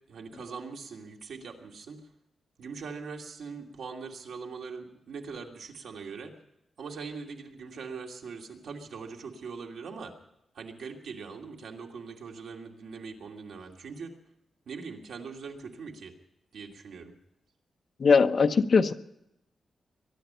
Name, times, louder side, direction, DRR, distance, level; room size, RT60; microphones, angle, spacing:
voice 1, 0.1-2.0 2.6-6.3 6.8-10.1 10.5-14.1 14.7-16.1 16.5-17.1, right 5 dB, 80° right, 2 dB, 2.6 m, -41 dB
voice 2, 18.0-18.9, left 5 dB, 45° left, 8 dB, 0.9 m, -20 dB
23.0 x 11.0 x 5.7 m, 0.83 s
wide cardioid pair, 155°, 0 cm